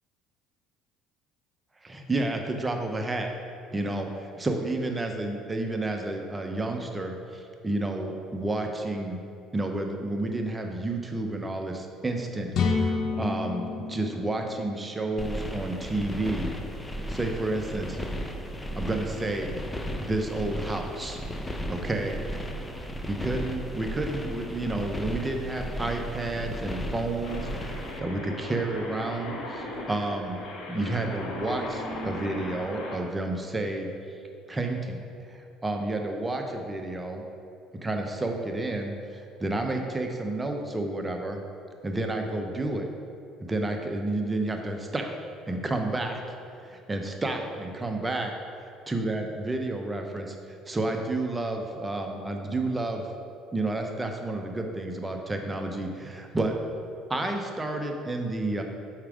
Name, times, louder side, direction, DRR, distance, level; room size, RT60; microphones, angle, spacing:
voice 1, 1.8-3.3 3.7-9.2 9.5-16.5 17.1-18.0 18.7-19.6 20.0-21.2 21.7-22.2 23.1-33.9 34.5-35.0 35.3-37.2 37.8-41.4 41.8-42.9 43.4-45.2 45.5-46.2 46.6-48.3 48.9-50.4 50.7-53.0 53.5-56.6 57.1-58.6, right 2 dB, 20° right, 3 dB, 0.8 m, -30 dB
sound 1, 12.5-16.3, left 4 dB, 60° left, 0.8 m, -30 dB
sound 2, 15.2-28.0, equal, 15° left, 0.6 m, -35 dB
sound 3, 27.2-33.0, left 1 dB, 75° left, 1.4 m, -37 dB
5.7 x 4.7 x 5.1 m, 2.5 s
supercardioid pair, 80°, 0 cm